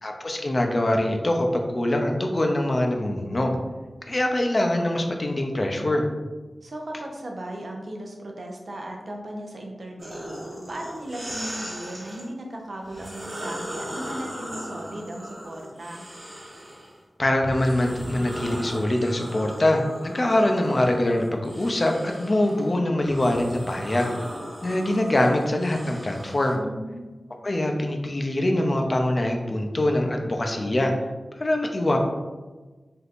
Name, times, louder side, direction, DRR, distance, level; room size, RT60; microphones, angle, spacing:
voice 1, 0.0-3.6 4.1-6.1 17.2-24.1 24.6-26.6 27.4-30.9 31.4-32.0, left 1 dB, 40° left, 3 dB, 0.4 m, -23 dB
voice 2, 6.6-10.2 10.7-16.1 26.5-27.1, right 1 dB, 65° right, 0 dB, 0.5 m, -37 dB
sound 1, 10.0-12.2 12.8-16.9 17.4-26.5, equal, 45° right, 1.1 m, -38 dB
3.5 x 2.7 x 2.4 m, 1.3 s
wide cardioid pair, 80°, 0 cm